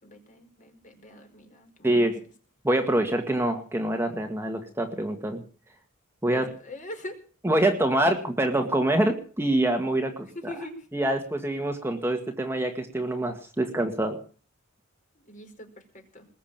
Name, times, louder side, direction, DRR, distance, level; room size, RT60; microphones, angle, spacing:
voice 1, 0.0-2.1 6.3-7.2 10.3-10.7 15.2-16.3, left 1 dB, 40° left, 4 dB, 4.7 m, -42 dB
voice 2, 1.8-2.2 2.6-5.4 6.2-6.5 7.4-10.5 10.9-14.2, right 1 dB, 10° right, 4 dB, 1.8 m, -25 dB
20.5 x 7.3 x 8.8 m, 0.41 s
head